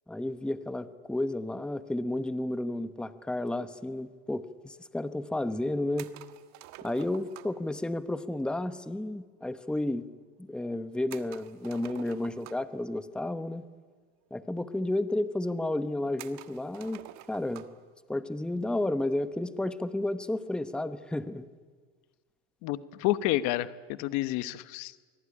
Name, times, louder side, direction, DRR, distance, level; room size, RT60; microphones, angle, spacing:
voice 1, 0.1-6.1 6.8-10.1 10.4-13.6 14.3-17.0 17.3-17.7 18.1-21.5, left 1 dB, 5° left, 11 dB, 1.0 m, -32 dB
sound 1, 6.0-7.7 11.1-12.8 13.9-14.0 14.3-14.4 15.1-15.2 16.2-17.8, right 15 dB, 60° right, 1.5 m, -48 dB
voice 2, 22.6-25.0, left 15 dB, 65° left, 13 dB, 1.2 m, -30 dB
24.0 x 24.0 x 10.0 m, 1.5 s
supercardioid pair, 120°, 31 cm